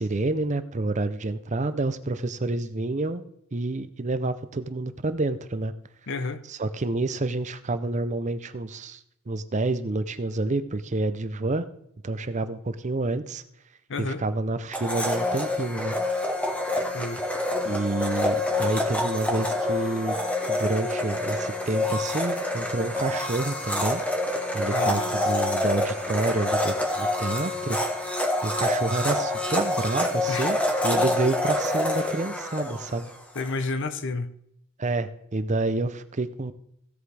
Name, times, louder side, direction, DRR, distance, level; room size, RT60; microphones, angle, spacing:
voice 1, 0.0-3.2 3.5-5.7 6.5-9.0 9.3-11.7 12.0-13.4 14.0-16.0 17.6-20.2 20.5-24.0 24.5-27.8 28.4-30.6 30.8-33.1 34.8-36.5, right 2 dB, 35° right, 0.6 m, -28 dB
voice 2, 6.1-6.4 13.9-14.2 16.9-17.2 24.7-25.1 30.3-30.5 33.3-34.3, left 3 dB, 55° left, 0.7 m, -30 dB
Domestic sounds home sounds, 14.7-33.5, left 1 dB, 5° left, 1.4 m, -27 dB
16.5 x 8.0 x 3.4 m
head